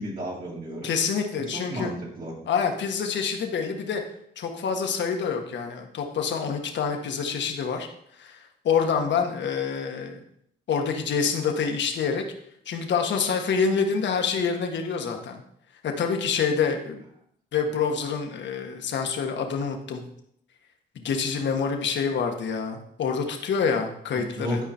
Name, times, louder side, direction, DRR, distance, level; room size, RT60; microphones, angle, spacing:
voice 1, 0.0-0.9 1.5-2.3 24.1-24.7, equal, 45° right, -5 dB, 3.0 m, -32 dB
voice 2, 0.8-1.9 2.5-4.0 4.4-7.9 8.1-10.2 10.7-12.2 12.6-15.4 15.8-17.0 17.5-20.0 20.9-24.6, left 6 dB, 65° left, 4 dB, 1.5 m, -27 dB
12.0 x 5.0 x 4.4 m, 0.72 s
cardioid pair, 90°, 20 cm